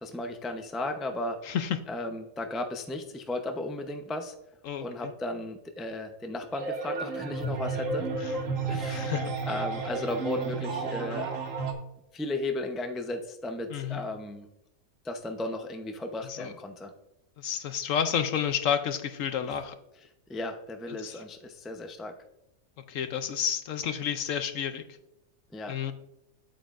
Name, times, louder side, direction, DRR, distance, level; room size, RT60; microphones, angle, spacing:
voice 1, 0.0-1.4 1.9-4.3 4.8-8.1 8.7-9.1 9.5-11.4 12.1-14.5 15.0-16.9 19.5-19.6 20.3-22.1 25.5-25.7, left 1 dB, ahead, 4 dB, 0.4 m, -35 dB
voice 2, 1.4-1.8 4.6-5.1 8.2-8.4 8.8-9.3 13.7-14.1 16.3-16.5 17.4-19.8 20.9-21.2 22.8-24.9 25.7-25.9, left 8 dB, 65° left, 10 dB, 0.9 m, -31 dB
sound 1, 6.5-11.7, right 4 dB, 60° right, 1.5 m, -32 dB
9.4 x 8.8 x 2.5 m, 0.89 s
omnidirectional pair, 1.6 m